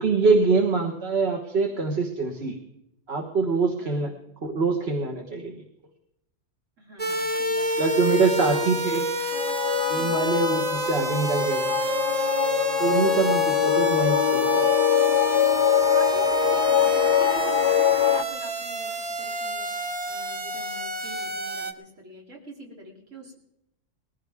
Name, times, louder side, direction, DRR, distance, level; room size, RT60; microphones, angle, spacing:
voice 1, 0.0-2.5 3.1-4.1 4.4-5.6 7.8-9.1 9.9-11.8 12.8-14.7, right 4 dB, 55° right, 2 dB, 1.6 m, -24 dB
voice 2, 3.8-4.2 6.8-7.9 8.4-8.7 9.9-10.2 13.1-13.4 15.7-19.7 20.1-23.4, equal, 80° right, -1 dB, 3.4 m, -43 dB
sound 1, 7.0-21.7, right 2 dB, 35° right, 1.0 m, -28 dB
sound 2, 9.3-18.2, left 10 dB, 60° left, 0.8 m, -23 dB
20.0 x 15.5 x 3.5 m, 0.83 s
omnidirectional pair, 1.3 m